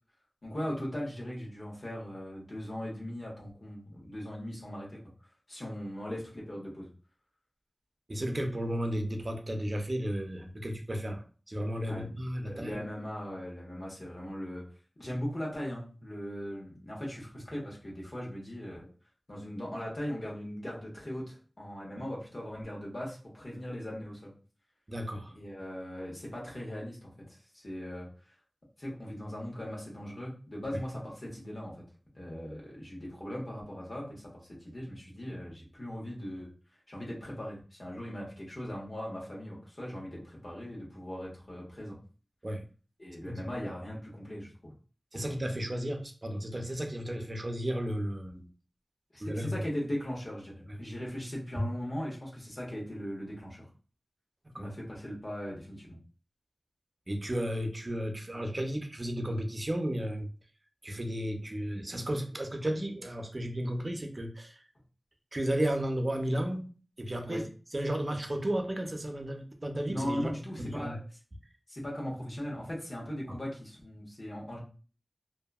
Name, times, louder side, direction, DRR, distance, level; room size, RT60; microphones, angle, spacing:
voice 1, 0.4-5.0 5.5-6.9 11.9-12.2 12.5-14.6 15.0-18.9 19.3-24.3 25.3-28.1 28.8-31.8 32.1-36.5 36.9-42.0 43.0-44.7 45.1-45.3 49.1-53.7 54.6-56.0 67.3-67.4 69.9-71.0 71.7-74.6, equal, 55° left, 1.1 m, -39 dB
voice 2, 8.1-12.8 22.0-22.1 24.9-25.3 42.4-42.6 43.3-43.5 45.1-48.4 49.2-49.6 51.6-51.7 54.5-54.7 57.1-60.3 60.8-64.6 65.3-66.7 67.0-67.4 67.7-70.3 70.6-71.0, equal, 40° right, 0.5 m, -33 dB
2.7 x 2.5 x 2.3 m
wide cardioid pair, 60°, 0 cm